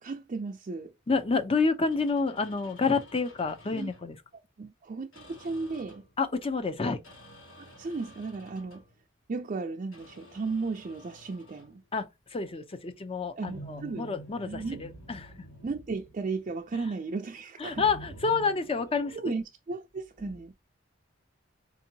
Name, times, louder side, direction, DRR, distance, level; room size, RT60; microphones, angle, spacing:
voice 1, 0.0-0.9 3.7-3.9 4.6-6.0 7.6-8.8 9.3-11.8 13.4-14.1 14.5-14.8 15.6-17.8 19.1-20.5, right 3 dB, 40° right, 0.4 m, -35 dB
voice 2, 1.1-4.2 6.2-7.0 11.9-15.3 16.7-16.9 17.6-19.2 20.2-20.3, left 4 dB, 30° left, 0.5 m, -29 dB
sound 1, 1.9-4.1 5.1-6.2 7.0-8.9 9.9-11.8 13.4-16.6 17.7-19.2, right 1 dB, 80° left, 1.5 m, -49 dB
4.4 x 2.7 x 2.7 m
head